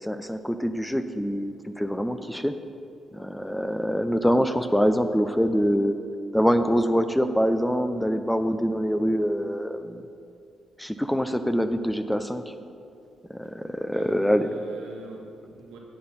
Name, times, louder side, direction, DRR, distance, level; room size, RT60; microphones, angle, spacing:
voice 1, 0.0-2.5 3.1-6.0 6.3-10.0 10.8-12.5 13.3-14.5, equal, 5° left, 9 dB, 0.5 m, -25 dB
voice 2, 13.9-15.8, right 2 dB, 80° right, 0 dB, 1.3 m, -43 dB
9.6 x 8.6 x 4.2 m, 2.5 s
hypercardioid pair, 45°, 0 cm